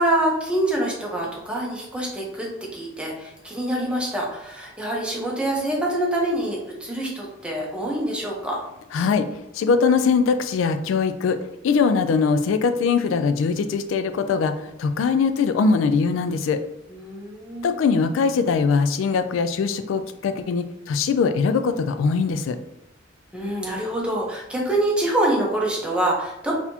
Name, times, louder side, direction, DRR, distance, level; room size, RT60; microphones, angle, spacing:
voice 1, 0.0-8.6 16.9-17.7 23.3-26.5, right 1 dB, 5° right, -3 dB, 0.8 m, -25 dB
voice 2, 8.9-9.3 9.5-11.4 11.6-16.6 17.6-22.6, left 5 dB, 80° left, 9 dB, 0.3 m, -21 dB
4.0 x 2.9 x 2.7 m, 0.86 s
head